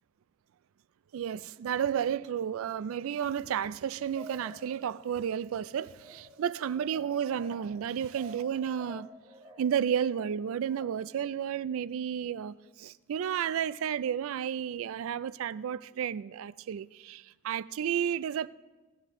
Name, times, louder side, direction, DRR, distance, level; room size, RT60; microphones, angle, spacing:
voice 1, 1.1-9.1 9.6-18.5, right 8 dB, 65° right, 0.3 m, -32 dB
sound 1, 4.2-5.2 5.9-11.2, equal, 20° right, 1.2 m, -51 dB
17.0 x 11.5 x 3.6 m
head